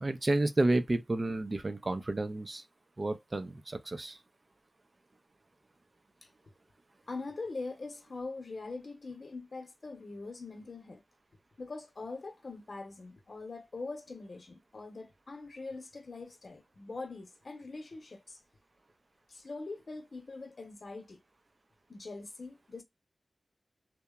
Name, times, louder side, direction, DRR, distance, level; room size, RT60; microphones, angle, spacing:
voice 1, 0.0-2.6 3.0-4.2, right 2 dB, 45° right, 0.5 m, -30 dB
voice 2, 7.1-11.0 11.6-18.4 19.3-21.2 21.9-22.8, left 3 dB, 60° left, 0.8 m, -43 dB
2.9 x 2.1 x 2.3 m
cardioid pair, 50°, 0 cm